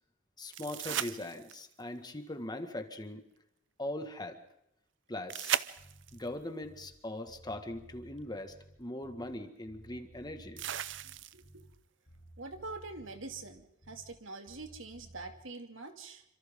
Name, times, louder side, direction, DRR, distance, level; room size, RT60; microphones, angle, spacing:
voice 1, 0.4-3.3 3.8-4.4 5.1-5.6 6.1-10.6, left 1 dB, 20° left, 6 dB, 1.9 m, -40 dB
sound 1, 0.5-1.8 5.3-6.3 8.2-8.3 10.6-11.6 14.5-14.6, right 10 dB, 65° right, 0.7 m, -36 dB
Bass guitar, 5.8-7.0 7.3-9.4 9.7-11.8 12.1-14.2 14.5-15.3, right 1 dB, 60° left, 4.3 m, -56 dB
voice 2, 12.4-16.2, right 3 dB, 85° right, 5 dB, 2.6 m, -45 dB
27.5 x 26.0 x 3.8 m, 0.80 s
head